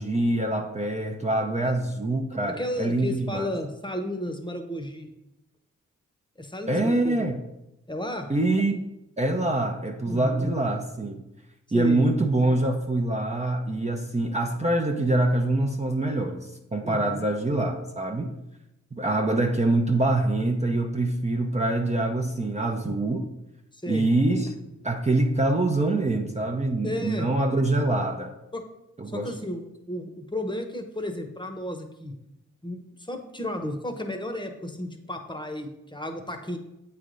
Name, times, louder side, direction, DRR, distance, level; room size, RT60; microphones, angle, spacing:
voice 1, 0.0-3.5 6.7-7.4 8.3-8.8 9.2-11.2 11.7-18.3 18.9-23.3 23.9-24.5 24.8-28.3 29.0-29.3, right 2 dB, 20° right, 2 dB, 0.6 m, -25 dB
voice 2, 2.5-5.1 6.4-7.2 7.9-8.3 10.0-10.5 11.7-12.0 16.8-17.2 23.7-24.1 26.8-27.3 28.5-28.6 29.1-32.1 32.6-32.8 33.1-36.6, left 1 dB, 15° left, 5 dB, 0.9 m, -33 dB
8.1 x 3.3 x 3.9 m, 0.90 s
cardioid pair, 50°, 31 cm